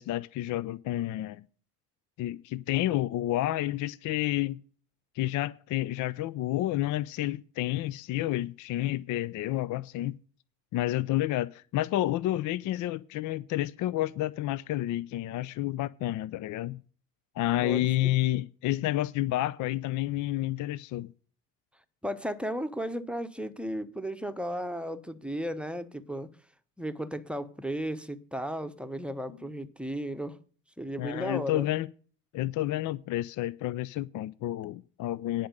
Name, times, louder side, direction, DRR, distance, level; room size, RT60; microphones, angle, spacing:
voice 1, 0.0-1.4 2.2-4.6 5.2-10.1 10.7-16.8 17.4-21.1 31.0-31.9 32.3-35.5, left 15 dB, 40° left, 0.4 m, -30 dB
voice 2, 17.6-18.2 22.0-26.3 26.8-30.4 30.8-31.7, equal, ahead, 0.9 m, -35 dB
10.0 x 5.2 x 8.4 m
hypercardioid pair, 60°, 49 cm